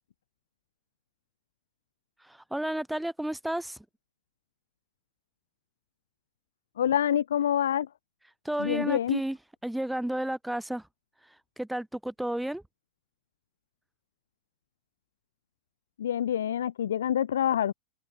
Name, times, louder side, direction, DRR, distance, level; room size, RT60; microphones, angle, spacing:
voice 1, 2.2-3.8 8.5-9.4 9.6-10.8 11.6-12.6, right 1 dB, 5° right, 3.6 m, -32 dB
voice 2, 6.8-7.9 8.6-9.2 16.0-17.7, left 10 dB, 75° left, 1.6 m, -26 dB
hypercardioid pair, 90°, 0 cm